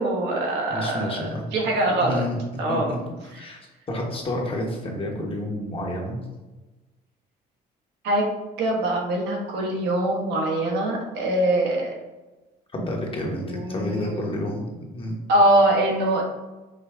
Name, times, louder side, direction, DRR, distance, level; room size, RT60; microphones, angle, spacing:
voice 1, 0.0-2.2 2.6-2.9 8.0-8.3 8.6-11.9 13.4-14.5 15.3-16.2, right 1 dB, 85° right, -1 dB, 1.2 m, -23 dB
voice 2, 0.7-1.4 2.0-2.4 2.7-3.0 3.2-3.6 3.9-6.2 12.7-14.6 14.9-15.2, left 1 dB, 30° left, 0 dB, 1.1 m, -29 dB
4.8 x 2.7 x 3.4 m, 1.1 s
cardioid pair, 110°, 17 cm